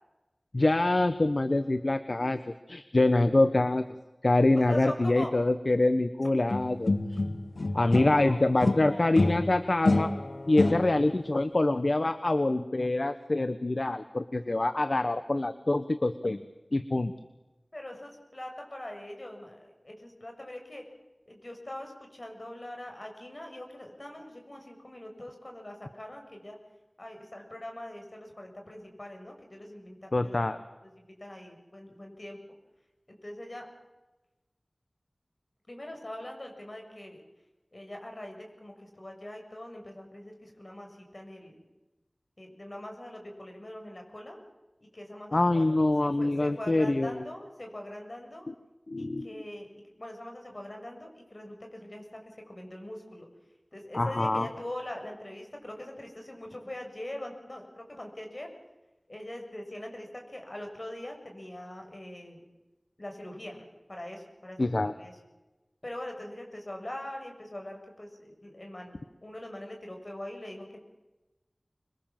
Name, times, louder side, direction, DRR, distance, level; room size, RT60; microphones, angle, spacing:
voice 1, 0.5-2.4 2.7-3.9 4.2-7.2 7.7-10.1 10.5-16.4 16.7-17.1 30.1-30.6 45.3-47.3 48.5-48.6 48.9-49.3 53.9-54.5 64.6-64.9, left 2 dB, 65° left, 11 dB, 1.1 m, -25 dB
voice 2, 4.5-5.3 7.8-9.2 17.7-20.9 21.3-26.6 27.0-30.4 30.8-32.4 33.1-33.7 35.7-37.2 37.7-41.6 42.4-44.4 44.9-45.7 46.0-48.5 49.0-49.7 50.0-53.3 53.7-58.5 59.1-62.4 63.0-64.6 64.9-65.1 65.8-70.8, left 1 dB, 50° left, 2 dB, 7.2 m, -42 dB
sound 1, 6.5-8.3 8.6-11.2, left 2 dB, 90° left, 1.5 m, -28 dB
26.5 x 22.5 x 7.5 m, 1.1 s
wide cardioid pair, 45°, 0 cm